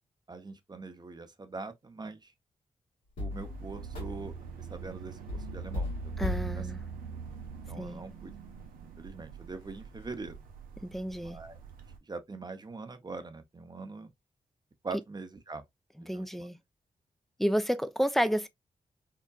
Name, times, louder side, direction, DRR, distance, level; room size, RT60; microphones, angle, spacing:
voice 1, 0.3-2.3 3.2-6.7 7.7-8.3 9.0-10.4 11.2-11.6 12.1-14.1 14.8-15.6 16.0-16.5, right 3 dB, 30° right, 0.7 m, -43 dB
sound 1, 3.2-4.5 5.3-7.9 8.5-8.6 9.0-9.1 9.5-10.3, left 2 dB, 85° left, 2.0 m, -38 dB
sound 2, 3.3-12.0, right 7 dB, 85° right, 0.5 m, -43 dB
voice 2, 6.2-6.8 7.8-8.0 10.8-11.4 16.1-16.6 17.4-18.5, equal, ahead, 0.4 m, -30 dB
3.7 x 2.2 x 2.3 m
supercardioid pair, 45°, 14 cm